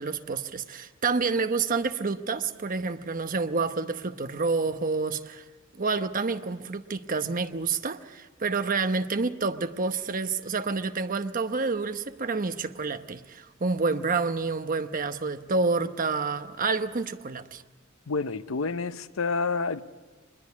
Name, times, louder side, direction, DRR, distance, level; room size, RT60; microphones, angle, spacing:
voice 1, 0.0-5.4 5.8-17.6, right 4 dB, 40° right, 0.9 m, -28 dB
voice 2, 18.1-19.8, left 4 dB, 90° left, 0.8 m, -28 dB
24.5 x 21.5 x 8.4 m
head